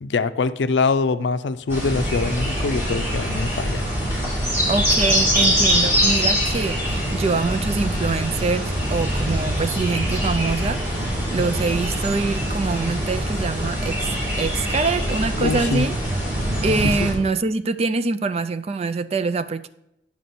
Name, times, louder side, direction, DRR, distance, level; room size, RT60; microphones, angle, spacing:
voice 1, 0.0-3.8 15.4-15.9 16.8-17.1, left 4 dB, 85° left, 12 dB, 0.5 m, -23 dB
sound 1, 1.7-17.1, equal, 15° right, 2.8 m, -23 dB
voice 2, 4.7-14.1 14.4-15.9 16.6-19.7, right 4 dB, 35° right, 13 dB, 0.3 m, -24 dB
9.3 x 5.9 x 4.2 m, 0.84 s
head